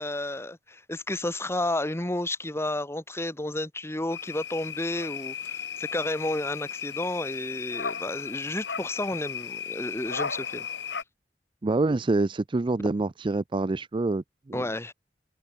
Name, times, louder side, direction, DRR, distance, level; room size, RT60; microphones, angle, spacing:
voice 1, 0.0-10.7 14.5-14.9, left 1 dB, 15° left, 1.7 m, -31 dB
sound 1, 4.1-11.0, left 7 dB, 80° left, 2.0 m, -35 dB
voice 2, 11.6-14.6, right 2 dB, 30° right, 0.4 m, -26 dB
head